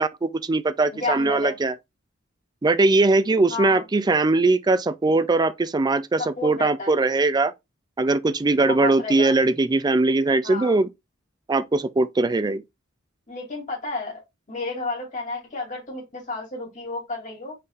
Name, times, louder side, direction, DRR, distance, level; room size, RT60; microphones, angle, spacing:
voice 1, 0.0-1.7 2.6-7.5 8.0-10.9 11.5-12.6, right 3 dB, 20° right, 0.4 m, -21 dB
voice 2, 0.9-1.6 3.5-3.8 6.2-6.9 8.6-9.3 10.4-10.8 13.3-14.2 14.5-17.5, left 3 dB, 40° left, 2.8 m, -31 dB
5.4 x 4.0 x 2.5 m
head